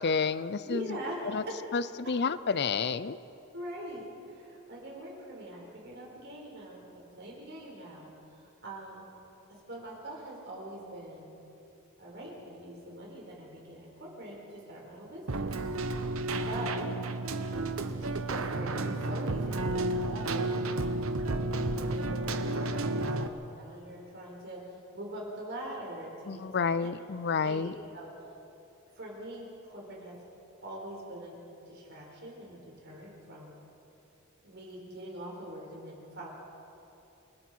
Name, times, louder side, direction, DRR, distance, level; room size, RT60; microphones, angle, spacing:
voice 1, 0.0-0.9 1.3-1.4 1.7-3.2 26.3-27.7, left 5 dB, 55° left, 15 dB, 0.6 m, -30 dB
voice 2, 0.6-1.8 3.5-9.1 9.5-11.3 12.0-15.5 16.5-16.9 17.9-20.7 21.5-24.7 24.9-26.9 27.4-28.1 29.0-30.2 30.6-31.4 31.6-33.6 34.4-36.3, right 1 dB, 55° right, -2 dB, 5.1 m, -43 dB
Keyboard (musical), 15.3-23.3, right 2 dB, 85° right, 1.0 m, -32 dB
28.5 x 19.5 x 4.7 m, 2.9 s
head